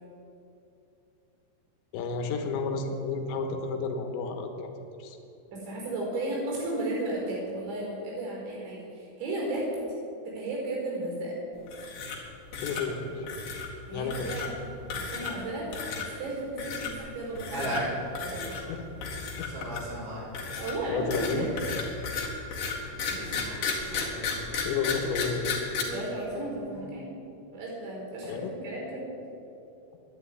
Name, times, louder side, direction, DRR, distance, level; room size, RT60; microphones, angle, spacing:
voice 1, 1.9-4.7 5.0-5.2 12.6-13.3 13.9-14.3 18.7-18.8 19.4-19.5 20.9-21.5 24.7-25.5 28.2-28.5, left 4 dB, 80° left, 5 dB, 3.5 m, -31 dB
voice 2, 5.5-9.7 10.3-11.4 13.9-14.5 14.9-15.7 16.0-18.5 20.6-21.5 25.9-27.1 27.5-29.1, right 2 dB, 80° right, -3 dB, 7.0 m, -34 dB
sound 1, 11.7-12.3 12.5-12.8 13.3-13.7 14.1-14.5 14.9-15.4 15.7-16.1 16.6-16.9 17.3-17.8 18.1-18.6 19.0-19.9 20.3-25.8, left 6 dB, 55° left, 3.3 m, -33 dB
sound 2, 17.0-19.1 19.4-25.4 25.8-26.8, right 1 dB, 50° right, 4.7 m, -38 dB
11.0 x 11.0 x 9.9 m, 2.8 s
omnidirectional pair, 5.2 m